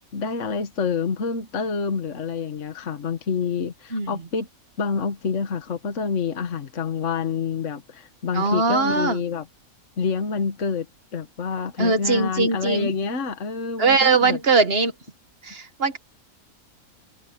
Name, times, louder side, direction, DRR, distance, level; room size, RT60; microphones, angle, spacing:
voice 1, 0.1-4.5 4.8-9.5 10.0-10.9 11.1-14.4, left 5 dB, 55° left, 1.7 m, -27 dB
voice 2, 8.3-9.2 11.8-12.9 13.8-14.9 15.4-16.0, right 4 dB, 45° right, 1.6 m, -21 dB
omnidirectional pair, 1.6 m